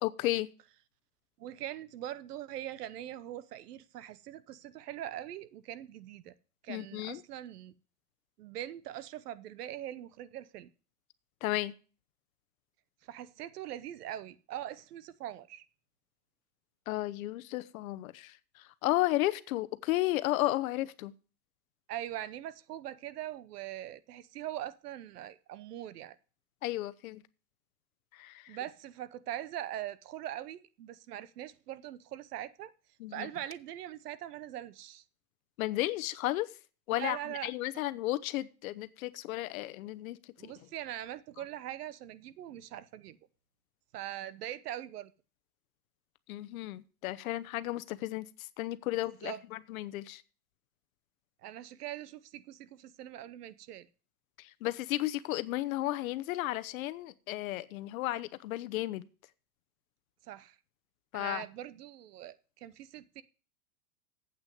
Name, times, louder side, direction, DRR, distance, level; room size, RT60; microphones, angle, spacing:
voice 1, 0.0-0.5 6.7-7.2 11.4-11.7 16.9-21.1 26.6-27.2 28.1-28.6 33.0-33.3 35.6-36.5 36.9-40.2 40.4-40.5 46.3-50.2 54.4-59.1 61.1-61.4, left 16 dB, 65° left, 0.8 m, -33 dB
voice 2, 1.4-6.3 6.6-7.7 8.4-10.7 13.1-15.7 21.9-26.2 28.5-32.7 33.1-35.0 36.9-37.5 40.4-43.2 43.9-45.1 49.0-49.4 51.4-53.9 60.3-60.6 61.1-63.2, right 12 dB, 90° right, 0.9 m, -42 dB
8.4 x 6.1 x 7.6 m
supercardioid pair, 150°, 45 cm